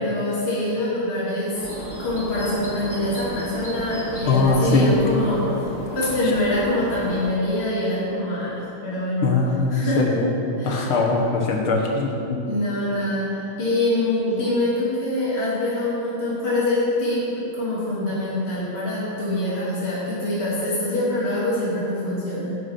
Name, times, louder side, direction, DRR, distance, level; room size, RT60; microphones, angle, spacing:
voice 1, 0.0-1.5 2.0-5.5 5.9-9.3 9.7-10.0 10.6-10.9 12.4-22.6, left 1 dB, 30° left, -9 dB, 2.8 m, -24 dB
sound 1, 1.5-7.3, right 1 dB, 20° right, 1.6 m, -35 dB
voice 2, 4.3-4.9 9.2-10.3 10.6-12.4, left 3 dB, 75° left, 0 dB, 2.2 m, -21 dB
10.5 x 8.1 x 5.8 m, 2.9 s
omnidirectional pair, 2.3 m